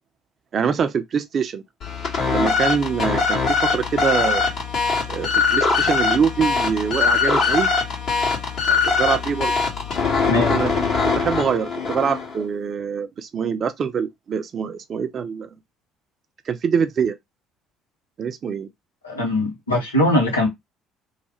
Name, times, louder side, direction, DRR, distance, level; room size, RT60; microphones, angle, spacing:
voice 1, 0.5-1.6 2.3-4.5 5.1-7.7 8.7-9.6 10.3-15.5 16.5-17.2 18.2-18.7, right 6 dB, 45° right, 0.5 m, -24 dB
sound 1, 1.8-12.4, left 5 dB, 55° left, 1.7 m, -22 dB
voice 2, 19.0-20.5, left 1 dB, 85° left, 1.0 m, -20 dB
3.2 x 2.3 x 2.9 m
figure-of-eight pair, 55°, 0 cm